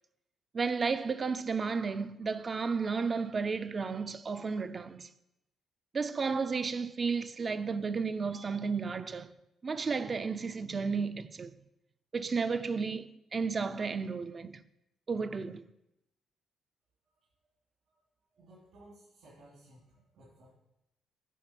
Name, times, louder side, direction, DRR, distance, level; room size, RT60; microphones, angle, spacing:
voice 1, 0.5-5.1 5.9-9.3 9.6-11.5 12.1-14.6 15.1-15.6, right 5 dB, 35° right, 0.5 m, -33 dB
voice 2, 18.3-20.5, right 1 dB, 80° right, 3.3 m, -58 dB
10.0 x 4.4 x 5.8 m
cardioid pair, 90°, 0 cm